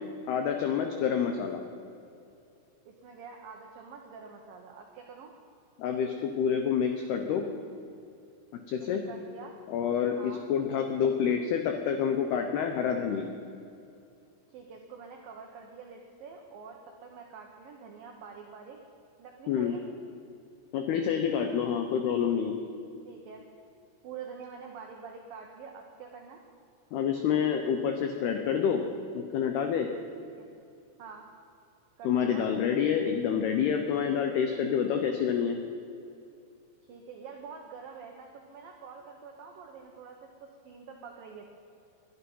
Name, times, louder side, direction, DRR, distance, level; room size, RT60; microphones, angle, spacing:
voice 1, 0.3-1.6 5.8-7.4 8.7-9.0 9.7-13.3 19.5-19.8 20.7-22.6 26.9-28.8 29.1-29.9 32.0-35.6, left 7 dB, 85° left, 5 dB, 2.2 m, -28 dB
voice 2, 2.9-5.3 8.8-9.5 10.2-10.5 14.5-18.8 19.2-19.8 23.1-23.4 24.0-26.4 30.2-30.5 31.0-31.3 32.0-32.5 36.9-41.5, right 5 dB, 90° right, 1 dB, 2.0 m, -46 dB
21.5 x 12.0 x 5.6 m, 2.6 s
omnidirectional pair, 5.9 m